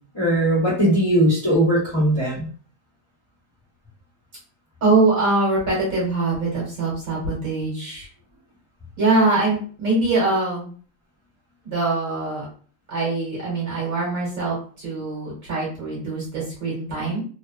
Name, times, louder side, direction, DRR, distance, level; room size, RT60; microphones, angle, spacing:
voice 1, 0.1-2.5, right 1 dB, 20° left, -8 dB, 0.8 m, -19 dB
voice 2, 4.8-8.1 9.0-10.7 11.6-12.4 12.9-17.2, right 3 dB, 50° right, -6 dB, 1.4 m, -23 dB
3.1 x 2.2 x 2.3 m, 0.43 s
omnidirectional pair, 2.0 m